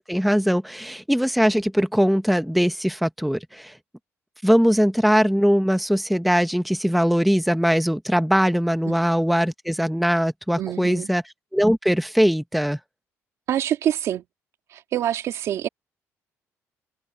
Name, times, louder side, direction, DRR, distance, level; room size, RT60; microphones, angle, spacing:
voice 1, 0.0-3.8 4.4-11.2 11.5-12.8, equal, ahead, 0.9 m, -21 dB
voice 2, 10.6-11.1 13.5-14.2 14.7-15.7, right 11 dB, 65° right, 2.4 m, -26 dB
cardioid pair, 135°, 5 cm